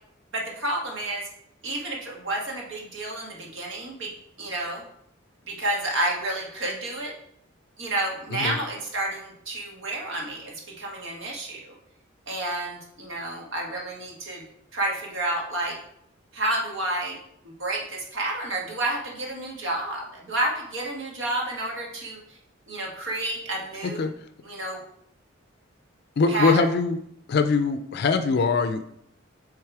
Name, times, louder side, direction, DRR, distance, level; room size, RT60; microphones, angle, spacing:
voice 1, 0.3-1.3 1.6-4.1 4.4-4.8 5.4-7.2 7.8-11.7 12.3-14.4 14.7-15.8 16.3-17.2 17.4-22.2 22.7-24.1 24.4-24.8 26.3-26.7, right 1 dB, 75° right, -1 dB, 1.6 m, -30 dB
voice 2, 26.2-27.0 27.3-28.9, left 4 dB, 55° left, 9 dB, 0.4 m, -22 dB
6.6 x 3.5 x 4.7 m, 0.74 s
head